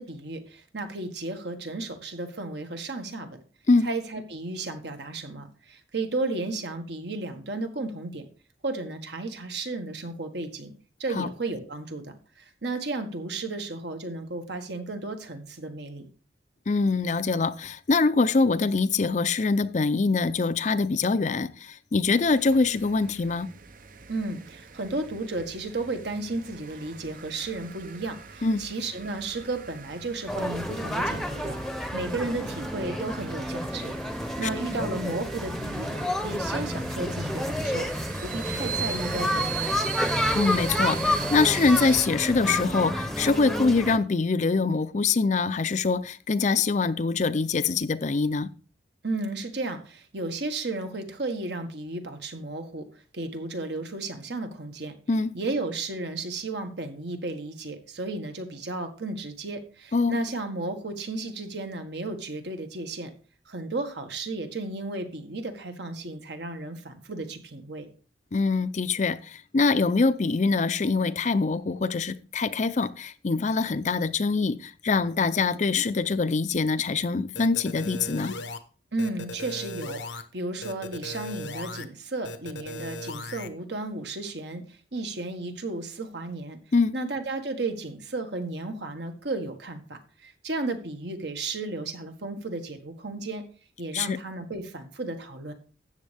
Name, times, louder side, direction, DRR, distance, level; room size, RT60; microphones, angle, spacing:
voice 1, 0.0-3.4 3.8-8.3 8.6-10.7 11.0-16.1 24.1-33.9 34.4-37.9 38.2-39.8 49.0-52.9 53.1-54.9 55.3-63.1 63.5-67.9 78.9-86.6 86.9-93.4 93.8-95.5, right 2 dB, 70° right, 1.6 m, -33 dB
voice 2, 16.7-23.5 28.4-28.7 40.3-48.5 55.1-55.3 59.9-60.2 68.3-78.3 86.7-86.9 93.9-94.2, left 4 dB, 40° left, 0.5 m, -24 dB
sound 1, 22.1-42.1, right 7 dB, 50° right, 0.7 m, -40 dB
sound 2, 30.3-44.0, left 1 dB, ahead, 0.8 m, -30 dB
sound 3, 77.4-78.6 79.0-80.2 80.6-81.9 82.2-83.5, left 2 dB, 90° left, 1.0 m, -37 dB
13.0 x 8.2 x 3.4 m
head